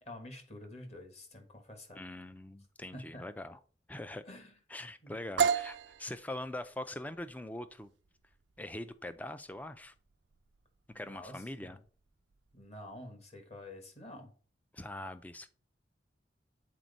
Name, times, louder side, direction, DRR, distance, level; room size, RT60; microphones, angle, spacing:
voice 1, 0.0-2.0 2.9-3.3 4.2-4.5 5.0-5.2 11.0-11.8 12.5-14.3, left 1 dB, 35° left, 1.4 m, -48 dB
voice 2, 1.9-3.6 3.9-4.2 4.7-7.9 8.6-9.9 10.9-11.8 14.7-15.5, left 1 dB, 10° left, 0.4 m, -42 dB
sound 1, 5.4-13.0, right 7 dB, 75° right, 0.4 m, -37 dB
7.5 x 4.3 x 4.0 m
head